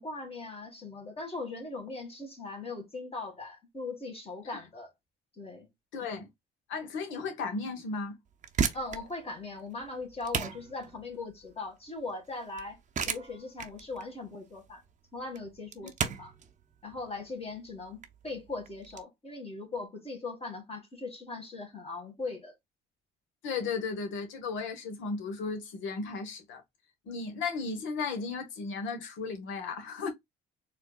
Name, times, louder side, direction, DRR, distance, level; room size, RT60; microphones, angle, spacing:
voice 1, 0.0-4.9 5.4-5.7 8.7-12.8 13.0-14.8 15.1-16.3 16.8-22.6, left 3 dB, 30° left, 1.6 m, -39 dB
voice 2, 5.9-6.3 6.7-8.2 15.8-15.9 23.4-26.6 27.1-30.1, left 4 dB, 70° left, 1.1 m, -35 dB
sound 1, 8.3-19.0, right 6 dB, 35° right, 0.6 m, -36 dB
4.3 x 2.6 x 2.2 m
supercardioid pair, 70°, 20 cm